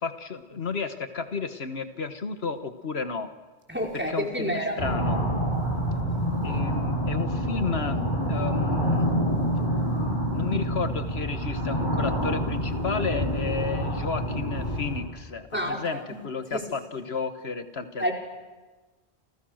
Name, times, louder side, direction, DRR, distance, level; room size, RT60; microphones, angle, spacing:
voice 1, 0.0-3.3 4.1-5.2 6.4-8.0 8.3-9.1 9.9-18.0, left 5 dB, 75° left, 9 dB, 1.7 m, -32 dB
voice 2, 3.7-4.8 15.5-16.0 16.5-16.6 18.0-18.1, equal, 10° right, 0 dB, 4.7 m, -28 dB
sound 1, 4.8-15.0, equal, 45° left, 7.2 m, -27 dB
30.0 x 29.0 x 6.5 m, 1.2 s
omnidirectional pair, 1.1 m